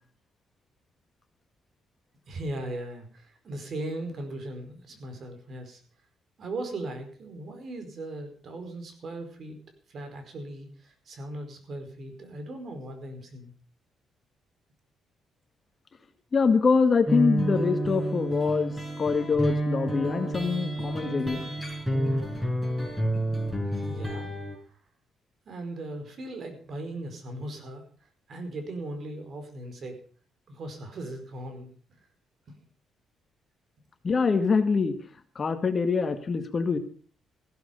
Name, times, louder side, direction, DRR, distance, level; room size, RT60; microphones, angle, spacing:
voice 1, 2.3-5.8 6.4-9.6 9.9-13.5 23.7-24.3 25.5-27.8 28.3-30.0 30.5-31.7, right 1 dB, 55° right, 6 dB, 4.9 m, -38 dB
voice 2, 16.3-21.5 34.0-34.9 35.4-36.8, left 5 dB, 40° left, 8 dB, 1.8 m, -24 dB
sound 1, 17.1-24.6, right 1 dB, 5° right, 5.8 m, -29 dB
15.5 x 12.5 x 5.3 m, 0.43 s
cardioid pair, 90°, 0 cm